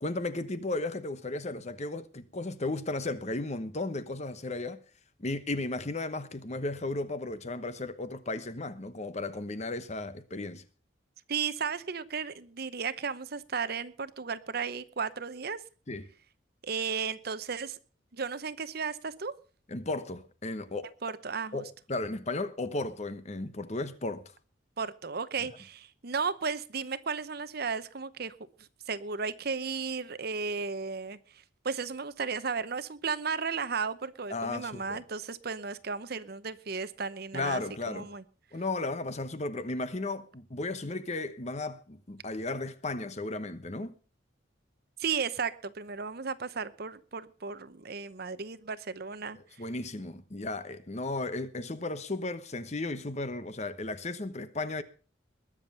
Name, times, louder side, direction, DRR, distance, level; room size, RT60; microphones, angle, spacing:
voice 1, 0.0-4.8 5.2-10.6 15.9-16.1 19.7-21.0 21.5-24.3 34.3-35.0 37.3-38.1 38.5-43.9 49.6-54.8, left 2 dB, 35° left, 1.0 m, -35 dB
voice 2, 11.3-15.6 16.6-17.8 18.1-19.3 21.0-21.6 24.8-37.6 37.9-38.2 45.0-49.6, right 5 dB, 55° right, 0.8 m, -34 dB
21.0 x 7.3 x 5.5 m
head